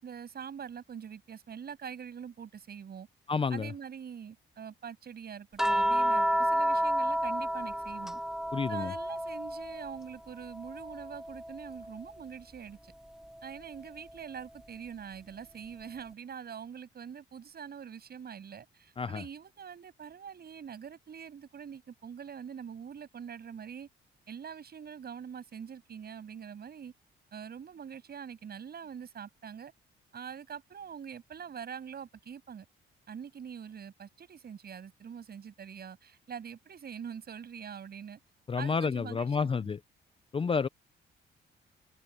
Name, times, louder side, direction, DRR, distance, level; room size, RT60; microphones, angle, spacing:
voice 1, 0.0-3.1 3.5-8.2 8.7-12.9 13.4-23.9 24.3-26.9 27.3-29.7 30.1-32.7 33.1-38.2 38.6-39.7, right 7 dB, 55° right, 7.3 m, -44 dB
voice 2, 3.3-3.7 8.5-8.9 19.0-19.2 38.5-39.8 40.3-40.7, left 5 dB, 25° left, 0.5 m, -30 dB
sound 1, 5.6-10.1 10.4-12.1 13.6-13.8, equal, ahead, 0.9 m, -31 dB
cardioid pair, 90°, 20 cm